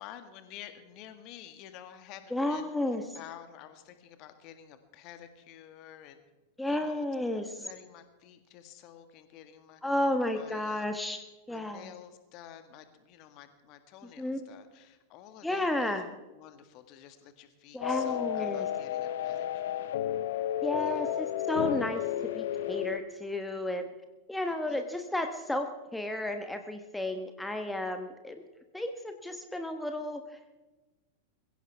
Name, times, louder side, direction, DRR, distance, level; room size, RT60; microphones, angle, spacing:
voice 1, 0.0-2.7 3.1-6.2 6.7-7.1 7.3-9.8 10.3-10.9 11.5-16.0 16.3-20.0 20.7-21.2 24.5-24.9, left 10 dB, 40° left, 9 dB, 1.7 m, -50 dB
voice 2, 2.3-3.0 6.6-7.7 9.8-11.9 14.2-14.4 15.4-16.1 17.7-18.7 20.6-22.0 22.3-23.9 24.3-28.4 28.7-30.5, left 1 dB, 5° left, 6 dB, 1.2 m, -32 dB
sound 1, 17.8-23.0, left 11 dB, 55° left, 0.7 m, -32 dB
22.0 x 16.0 x 3.5 m, 1.1 s
figure-of-eight pair, 90°, 0 cm